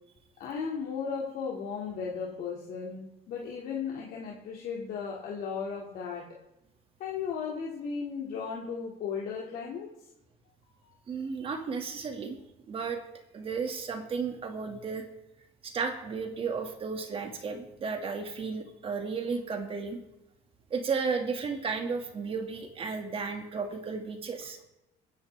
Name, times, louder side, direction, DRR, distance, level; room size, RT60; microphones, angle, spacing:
voice 1, 0.4-6.3 7.0-9.9 10.8-10.9, left 6 dB, 65° left, -2 dB, 2.2 m, -35 dB
voice 2, 11.1-12.4 12.7-13.0 13.3-15.1 15.6-20.0 20.7-24.6, right 5 dB, 35° right, 4 dB, 2.0 m, -33 dB
23.0 x 10.5 x 3.4 m, 0.92 s
cardioid pair, 140°, 16 cm